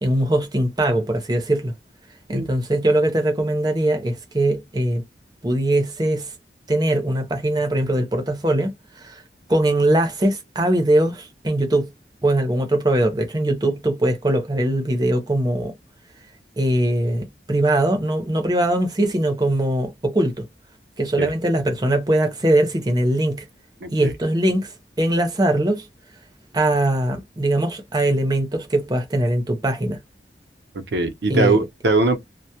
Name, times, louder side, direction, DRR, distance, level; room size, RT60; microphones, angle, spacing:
voice 1, 0.0-1.7 2.3-5.0 5.4-6.3 6.7-9.2 9.5-11.9 12.2-15.7 16.6-20.4 21.0-23.5 23.9-25.9 26.5-30.0 31.3-31.6, right 1 dB, 25° right, 0.6 m, -21 dB
voice 2, 23.8-24.1 30.9-32.2, right 3 dB, 80° right, 0.6 m, -20 dB
2.2 x 2.1 x 2.7 m
head